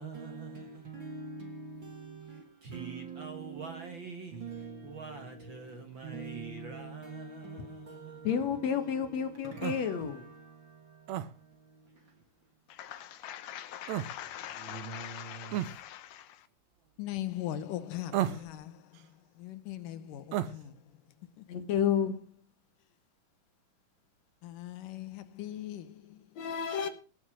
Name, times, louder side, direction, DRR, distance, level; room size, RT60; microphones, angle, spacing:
voice 1, 0.0-12.2 12.8-15.7, right 4 dB, 50° right, 1.7 m, -44 dB
voice 2, 8.2-10.2 21.5-22.2 26.4-26.9, left 8 dB, 60° left, 2.3 m, -30 dB
sound 1, 9.6-9.8 11.1-11.3 13.9-14.1 15.5-15.7 18.1-18.5 20.3-20.5, right 12 dB, 70° right, 1.8 m, -31 dB
voice 3, 12.7-16.5 17.0-18.8 19.4-20.7 21.4-21.5 24.4-26.2, left 12 dB, 80° left, 2.6 m, -41 dB
17.5 x 7.2 x 6.2 m
omnidirectional pair, 3.8 m